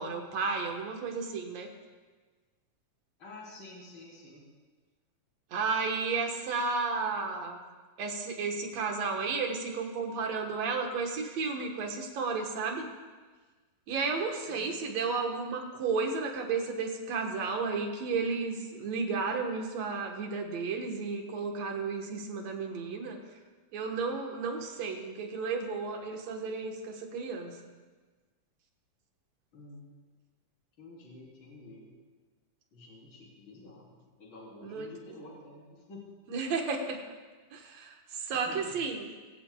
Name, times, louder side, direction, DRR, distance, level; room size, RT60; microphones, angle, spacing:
voice 1, 0.0-1.7 5.5-7.6 8.0-12.9 13.9-23.2 23.7-27.6 34.6-34.9 36.3-37.0 37.5-39.1, right 4 dB, 60° right, 3 dB, 2.2 m, -33 dB
voice 2, 3.2-4.5 14.5-14.7 29.5-29.8 30.8-31.9 32.7-36.1 38.3-38.8, left 2 dB, 35° left, -5 dB, 4.2 m, -49 dB
21.5 x 15.5 x 2.3 m, 1.4 s
omnidirectional pair, 3.8 m